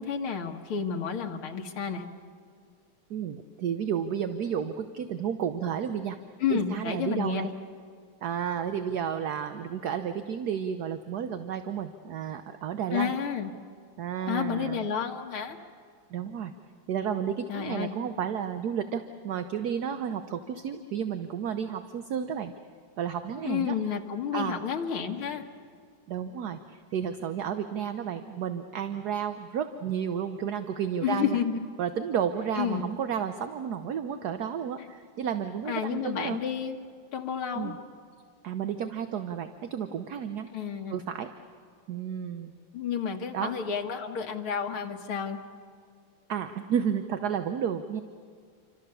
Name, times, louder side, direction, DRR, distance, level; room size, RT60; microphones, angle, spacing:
voice 1, 0.0-2.0 6.4-7.5 12.9-13.5 14.3-15.6 17.5-17.9 23.4-25.4 31.0-31.6 32.6-32.9 35.7-36.8 37.1-37.7 40.5-41.0 42.7-45.4, left 7 dB, 90° left, 3 dB, 2.3 m, -30 dB
voice 2, 3.1-6.2 6.5-7.5 8.2-13.1 14.0-14.9 16.1-16.5 16.9-22.5 23.0-23.7 24.3-24.6 26.1-31.4 31.8-36.4 37.5-37.8 38.4-40.5 40.9-41.3 41.9-42.5 43.3-43.5 46.3-48.0, right 8 dB, 60° right, 9 dB, 1.2 m, -32 dB
28.0 x 25.5 x 6.9 m, 2.1 s
omnidirectional pair, 2.3 m